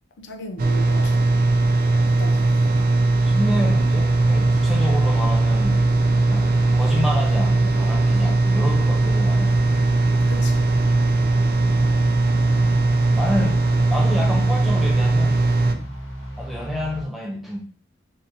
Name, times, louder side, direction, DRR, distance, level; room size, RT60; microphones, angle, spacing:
voice 1, 0.2-1.2 2.1-2.9 10.3-10.7 15.7-15.9, equal, 60° left, 0.4 m, -37 dB
sound 1, 0.6-15.7, right 2 dB, 45° right, 0.3 m, -19 dB
voice 2, 3.2-5.9 6.1-9.9 13.1-15.4 16.4-17.6, left 1 dB, ahead, 0.6 m, -29 dB
sound 2, 3.7-17.0, right 1 dB, 85° left, 1.0 m, -35 dB
3.5 x 2.7 x 2.7 m
head